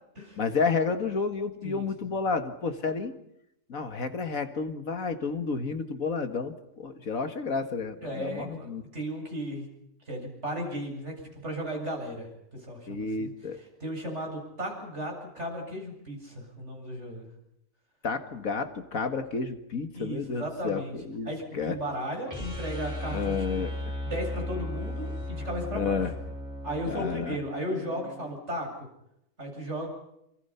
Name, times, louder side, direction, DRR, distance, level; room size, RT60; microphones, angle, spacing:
voice 1, 0.4-3.1 3.7-8.8 12.9-13.6 18.0-21.8 23.1-23.7 25.7-26.1 26.9-27.4, left 5 dB, 75° left, 8 dB, 2.2 m, -31 dB
voice 2, 1.6-2.1 8.0-9.7 10.0-11.1 11.4-17.3 19.9-21.0 21.2-23.6 24.0-26.0 26.6-28.9 29.4-29.9, equal, 55° right, 1 dB, 8.4 m, -35 dB
sound 1, 22.2-28.3, left 1 dB, 15° right, 6.0 m, -36 dB
28.0 x 27.0 x 5.8 m, 0.79 s
omnidirectional pair, 1.4 m